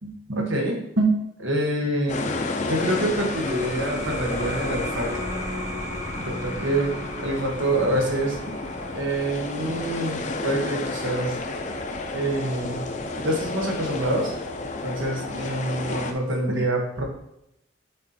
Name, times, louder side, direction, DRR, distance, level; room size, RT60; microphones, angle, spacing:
voice 1, 0.0-2.2 2.7-5.1 6.1-6.9 7.2-8.3 8.9-11.4 12.1-12.8 13.2-14.3 14.8-17.0, right 1 dB, 90° right, 1 dB, 1.6 m, -26 dB
sound 1, 2.1-16.1, left 3 dB, 40° left, 0.6 m, -31 dB
sound 2, 2.9-14.1, equal, 20° right, 1.1 m, -38 dB
7.2 x 4.3 x 4.3 m, 0.81 s
head